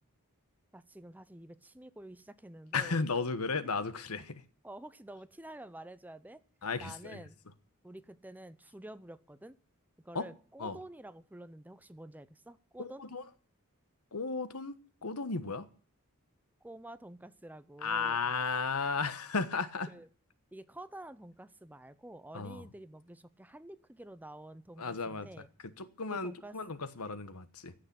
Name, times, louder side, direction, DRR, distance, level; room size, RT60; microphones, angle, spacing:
voice 1, 0.7-3.0 4.6-6.4 6.8-7.4 7.8-9.6 10.0-13.0 16.6-18.2 19.9-20.1 20.5-25.5 26.1-26.5, right 1 dB, 5° right, 0.6 m, -49 dB
voice 2, 2.7-4.4 6.6-7.2 10.1-10.3 10.6-10.8 12.8-13.2 14.1-15.7 17.8-19.9 22.3-22.7 24.8-25.3 25.8-27.7, left 4 dB, 80° left, 1.2 m, -34 dB
15.5 x 6.6 x 10.0 m
head